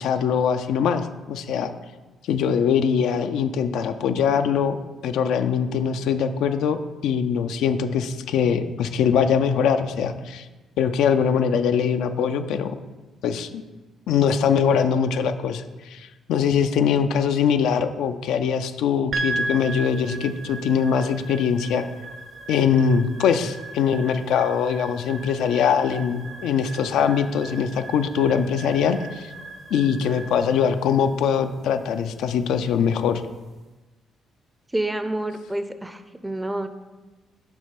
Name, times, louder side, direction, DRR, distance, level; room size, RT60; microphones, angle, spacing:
voice 1, 0.0-1.7 2.3-4.8 5.0-10.5 10.8-12.7 13.2-13.6 14.1-21.8 22.5-29.3 29.7-33.2, left 7 dB, 85° left, 8 dB, 0.4 m, -22 dB
sound 1, 19.1-33.5, right 2 dB, 50° right, 0.6 m, -37 dB
voice 2, 34.7-36.7, right 1 dB, 10° right, 9 dB, 0.5 m, -28 dB
6.1 x 3.4 x 5.8 m, 1.2 s
cardioid pair, 90°, 0 cm